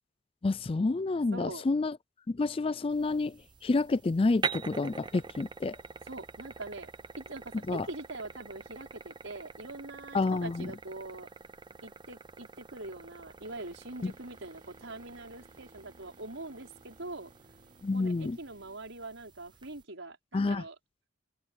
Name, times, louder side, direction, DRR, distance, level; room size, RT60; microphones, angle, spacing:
voice 1, 0.4-2.0 2.3-5.8 7.7-7.9 10.1-10.7 14.0-14.1 17.8-18.4 20.3-20.6, left 3 dB, 30° left, 0.4 m, -29 dB
voice 2, 1.3-1.6 6.1-6.9 7.2-11.3 11.8-17.3 17.9-20.8, right 2 dB, 80° right, 5.4 m, -43 dB
sound 1, 2.9-19.8, right 5 dB, 25° right, 0.7 m, -45 dB
sound 2, 13.4-18.8, right 1 dB, 50° right, 6.4 m, -62 dB
open air
head